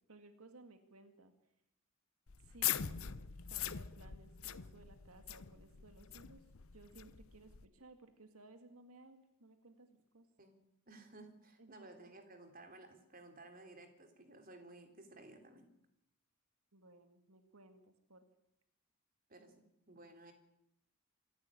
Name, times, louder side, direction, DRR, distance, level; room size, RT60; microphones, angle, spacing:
voice 1, 0.1-1.3 2.4-6.4 6.7-9.9 10.1-10.3 11.6-11.7 16.7-18.3, right 2 dB, 90° right, 7 dB, 2.1 m, -59 dB
sound 1, 2.3-7.7, left 10 dB, 75° left, 0.9 m, -42 dB
voice 2, 10.9-15.7 19.3-19.5 19.9-20.3, right 2 dB, 40° right, 5 dB, 3.4 m, -56 dB
26.5 x 12.0 x 9.9 m, 0.83 s
head